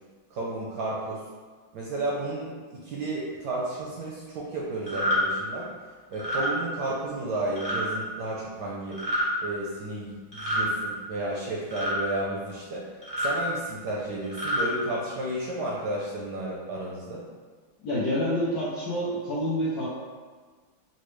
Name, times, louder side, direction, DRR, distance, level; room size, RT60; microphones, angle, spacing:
voice 1, 0.3-1.2 1.7-5.7 6.1-9.0 9.4-12.8 13.2-17.3, right 2 dB, 75° right, -4 dB, 1.0 m, -32 dB
sound 1, 4.9-5.2 6.1-6.5 7.6-7.8 8.9-9.3 10.3-10.7 11.7-12.0 13.0-13.4 14.2-14.6, equal, 25° right, 0.5 m, -27 dB
voice 2, 17.8-19.9, equal, 70° left, -7 dB, 0.9 m, -27 dB
4.1 x 2.1 x 3.0 m, 1.5 s
omnidirectional pair, 2.2 m